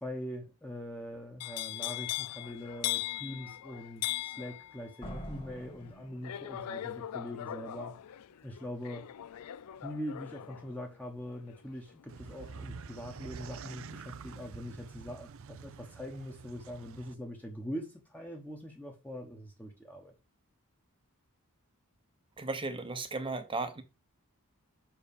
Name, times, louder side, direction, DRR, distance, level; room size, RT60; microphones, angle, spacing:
voice 1, 0.0-7.9 8.4-9.1 9.8-20.1, equal, 5° left, 1.0 m, -42 dB
sound 1, 1.4-13.4 13.7-14.1, left 14 dB, 90° left, 0.4 m, -40 dB
Slam, 5.0-6.9, equal, 25° left, 1.7 m, -45 dB
sound 2, 12.1-17.1, right 5 dB, 65° right, 0.5 m, -47 dB
voice 2, 22.4-23.8, right 3 dB, 25° right, 0.9 m, -35 dB
6.0 x 4.6 x 5.3 m
head